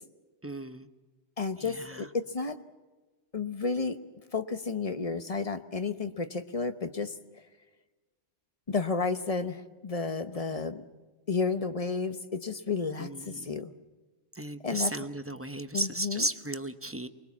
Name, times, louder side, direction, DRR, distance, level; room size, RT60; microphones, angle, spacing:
voice 1, 0.4-0.9 1.6-2.1 10.5-10.6 13.0-13.5 14.3-17.1, right 1 dB, 15° right, 10 dB, 0.7 m, -35 dB
voice 2, 1.4-2.6 3.3-4.0 4.3-7.1 8.7-10.8 11.3-13.7 14.6-14.9 15.7-16.3, left 4 dB, 35° left, 10 dB, 0.9 m, -32 dB
24.5 x 21.0 x 7.2 m, 1.3 s
omnidirectional pair, 1.2 m